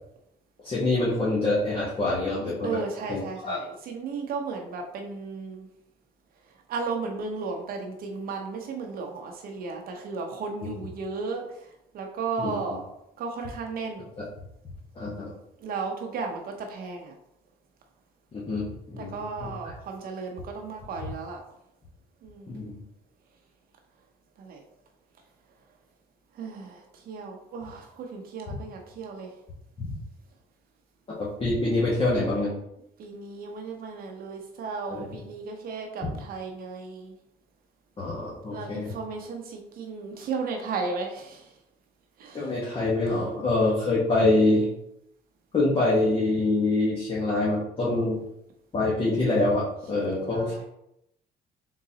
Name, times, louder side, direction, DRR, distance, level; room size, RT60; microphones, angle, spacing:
voice 1, 0.6-2.8 3.1-3.6 10.6-10.7 12.4-12.5 14.2-14.3 15.0-15.3 18.3-18.7 18.9-19.5 22.5-22.8 29.8-29.9 31.2-32.5 34.9-35.1 38.0-38.9 42.3-44.7 45.5-48.2 48.7-50.6, left 2 dB, 35° left, -7 dB, 1.1 m, -25 dB
voice 2, 2.6-5.7 6.7-11.4 11.9-12.8 13.2-14.1 15.6-17.1 19.0-21.4 22.2-22.6 24.4-24.6 26.4-29.3 33.0-37.1 38.5-41.5 42.2-42.5 43.1-43.5 49.9-50.6, right 4 dB, 60° right, 3 dB, 0.7 m, -35 dB
3.9 x 3.8 x 2.8 m, 0.80 s
cardioid pair, 110°, 17 cm